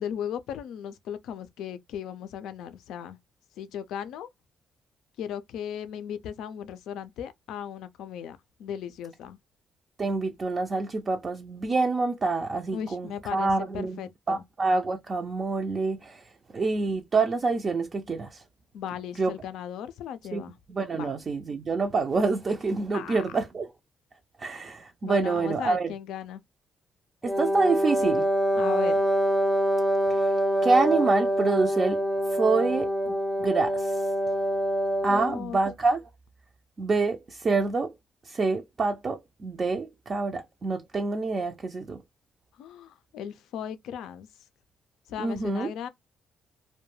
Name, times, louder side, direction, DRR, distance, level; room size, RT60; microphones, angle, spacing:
voice 1, 0.0-3.2 3.6-4.3 5.2-9.4 12.7-14.4 18.7-20.6 20.9-21.1 22.9-23.2 24.5-24.7 25.0-26.4 28.6-28.9 35.1-35.6 42.6-44.3 45.1-45.9, left 9 dB, 85° left, 0.3 m, -37 dB
voice 2, 10.0-14.0 14.3-16.2 16.5-18.4 19.2-19.3 20.3-20.4 20.7-23.7 24.4-25.9 27.2-28.3 30.1-30.3 30.6-32.0 32.3-33.1 33.4-34.0 35.0-36.0 36.8-37.9 38.3-42.0 45.2-45.7, right 3 dB, 40° right, 0.4 m, -26 dB
Wind instrument woodwind instrument, 27.2-35.4, equal, 10° left, 0.5 m, -25 dB
2.3 x 2.1 x 3.0 m
cardioid pair, 90°, 0 cm